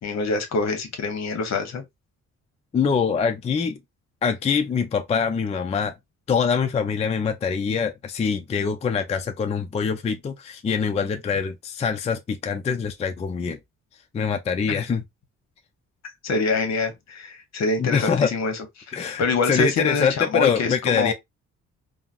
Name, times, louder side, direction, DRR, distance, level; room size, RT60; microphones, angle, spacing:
voice 1, 0.0-1.8 14.7-14.8 16.2-18.6 18.9-21.1, left 3 dB, 60° left, 0.9 m, -25 dB
voice 2, 2.7-3.8 4.2-5.9 6.3-13.6 14.1-15.0 17.8-18.3 18.9-21.1, left 6 dB, 20° left, 0.4 m, -24 dB
3.7 x 2.0 x 2.4 m
cardioid pair, 90°, 30 cm